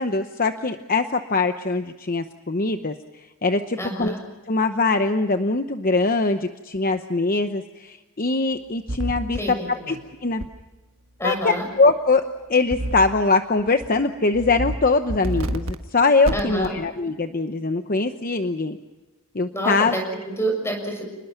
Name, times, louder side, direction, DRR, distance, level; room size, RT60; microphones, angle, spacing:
voice 1, 0.0-4.2 4.5-10.0 10.2-10.4 11.2-12.2 12.5-18.8 19.3-19.9, left 3 dB, 40° left, 8 dB, 0.9 m, -22 dB
voice 2, 3.8-4.2 9.4-9.9 11.2-11.7 16.3-16.7 19.5-21.0, right 1 dB, 10° left, 3 dB, 6.6 m, -28 dB
sound 1, 8.9-9.4 10.4-10.5 12.7-13.2 13.6-13.9 14.3-14.8 15.1-15.8 16.3-16.7, right 1 dB, 65° right, 1.5 m, -28 dB
29.5 x 21.0 x 5.8 m, 1.2 s
head